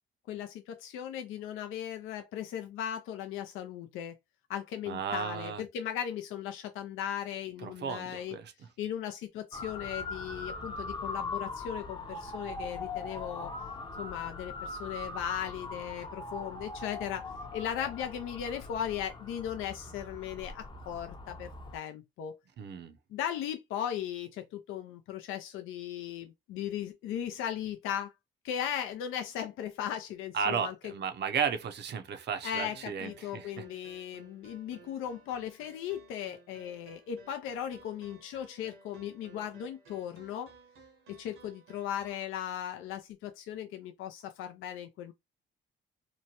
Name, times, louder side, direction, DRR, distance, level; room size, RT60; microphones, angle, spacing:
voice 1, 0.3-4.2 4.5-8.4 8.8-13.5 14.0-22.4 23.1-28.1 28.4-30.9 32.4-40.5 41.1-45.1, left 10 dB, 80° left, 0.4 m, -37 dB
voice 2, 4.9-5.6 7.6-8.5 22.6-23.0 30.3-33.6, right 7 dB, 55° right, 0.6 m, -34 dB
Motor vehicle (road) / Siren, 9.5-21.8, left 3 dB, 25° left, 0.6 m, -41 dB
sound 1, 32.7-42.3, right 3 dB, 85° right, 1.0 m, -57 dB
2.9 x 2.2 x 2.8 m
supercardioid pair, 65°, 21 cm